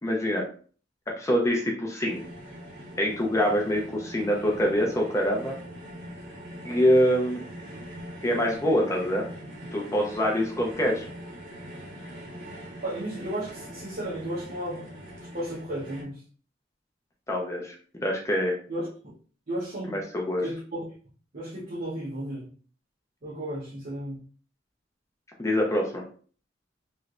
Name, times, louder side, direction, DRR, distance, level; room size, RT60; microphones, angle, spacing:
voice 1, 0.0-0.5 1.2-2.2 3.0-5.5 6.6-7.4 8.2-9.3 9.7-11.1 17.3-17.7 18.0-18.6 19.9-20.4 25.4-26.0, equal, 15° left, -1 dB, 0.5 m, -25 dB
sound 1, 2.0-16.0, equal, 65° right, 1.4 m, -42 dB
voice 2, 12.8-14.9 15.3-16.2 18.7-18.9 19.5-20.0 20.4-20.8 21.3-22.5 23.2-24.2, right 1 dB, 45° right, -8 dB, 0.9 m, -33 dB
3.1 x 3.1 x 2.4 m, 0.42 s
head